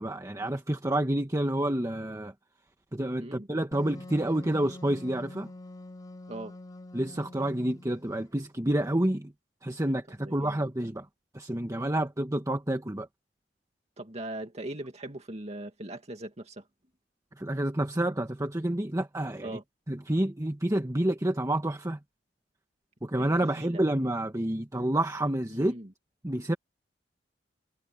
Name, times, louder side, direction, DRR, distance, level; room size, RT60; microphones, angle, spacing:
voice 1, 0.0-2.3 2.9-5.5 6.9-9.3 9.6-11.1 11.3-13.1 17.4-19.6 19.9-22.0 23.0-25.7 26.2-26.5, right 1 dB, 20° right, 1.3 m, -29 dB
voice 2, 3.2-3.5 6.3-6.6 10.2-10.7 14.0-16.7 19.4-19.6 23.2-23.9 25.5-25.9, right 1 dB, 40° right, 2.2 m, -40 dB
Wind instrument woodwind instrument, 3.7-8.1, left 2 dB, 25° left, 3.1 m, -45 dB
head